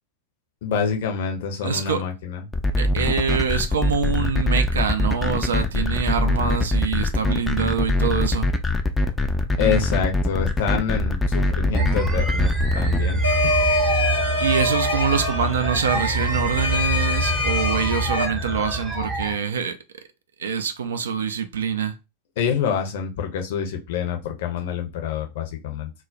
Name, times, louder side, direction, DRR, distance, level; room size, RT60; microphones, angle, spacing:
voice 1, 0.6-2.5 9.6-13.6 22.4-25.9, left 7 dB, 55° left, 0.6 m, -27 dB
voice 2, 1.6-2.0 2.8-8.5 14.4-19.8 20.4-21.9, right 6 dB, 65° right, 0.4 m, -25 dB
sound 1, 2.5-13.0, left 2 dB, 10° left, 0.3 m, -22 dB
sound 2, 11.7-19.4, right 1 dB, 10° right, 0.8 m, -25 dB
sound 3, 13.2-18.3, left 1 dB, 85° left, 0.7 m, -25 dB
2.3 x 2.0 x 3.8 m
figure-of-eight pair, 90°, 0 cm